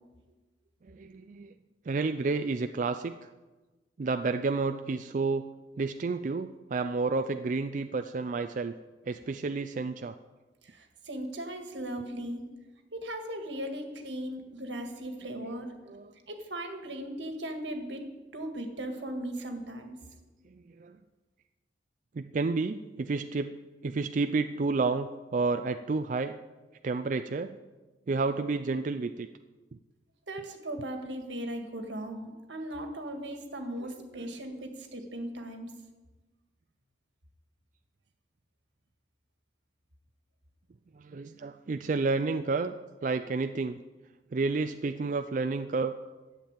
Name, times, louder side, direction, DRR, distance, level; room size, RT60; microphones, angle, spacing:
voice 1, 0.8-1.5 1.9-3.2 4.0-5.5 5.8-8.7 9.1-10.2 15.4-15.5 15.9-16.1 20.5-21.0 22.1-23.6 23.8-26.4 26.8-27.6 28.1-29.3 29.7-29.8 34.1-34.3 41.0-43.8 44.3-45.9, right 3 dB, 45° right, 8 dB, 0.4 m, -30 dB
voice 2, 10.6-12.5 12.9-15.8 16.3-20.0 30.3-35.7, right 1 dB, 80° right, 5 dB, 1.8 m, -38 dB
11.5 x 7.4 x 8.9 m, 1.2 s
head